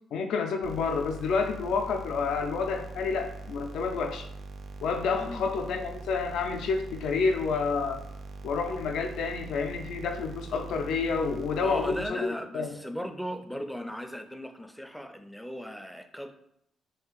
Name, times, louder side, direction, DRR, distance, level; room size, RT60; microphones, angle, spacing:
voice 1, 0.1-4.3 4.8-8.0 8.4-12.2 12.5-12.8, left 5 dB, 80° left, 5 dB, 0.3 m, -29 dB
sound 1, 0.6-12.1, right 3 dB, 60° right, 0.4 m, -42 dB
voice 2, 11.6-16.3, equal, ahead, 6 dB, 0.4 m, -37 dB
2.7 x 2.5 x 3.8 m, 0.73 s
cardioid pair, 90°, 0 cm